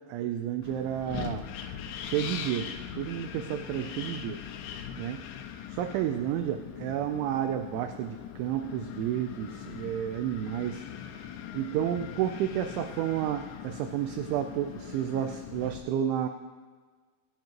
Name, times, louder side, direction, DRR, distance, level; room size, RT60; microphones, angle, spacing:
voice 1, 0.0-1.4 2.0-4.4 5.0-5.2 5.7-10.8 11.5-16.3, right 10 dB, 85° right, 7 dB, 2.8 m, -31 dB
Wind, 0.6-15.8, left 9 dB, 80° left, 2.8 m, -41 dB
26.0 x 9.3 x 3.0 m, 1.5 s
omnidirectional pair, 5.9 m